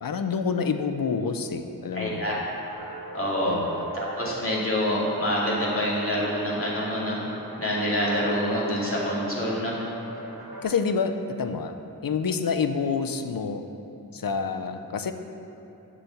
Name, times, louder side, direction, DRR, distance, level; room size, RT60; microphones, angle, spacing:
voice 1, 0.0-2.4 3.5-3.9 10.6-11.7 12.0-13.6 14.1-15.1, left 5 dB, 65° left, 8 dB, 0.7 m, -28 dB
voice 2, 1.9-2.3 3.1-3.6 3.9-7.2 7.6-9.7, equal, 35° left, -6 dB, 2.5 m, -26 dB
sound 1, 2.7-10.6, right 2 dB, 90° right, 1.7 m, -41 dB
7.2 x 7.1 x 7.1 m, 3.0 s
wide cardioid pair, 80°, 37 cm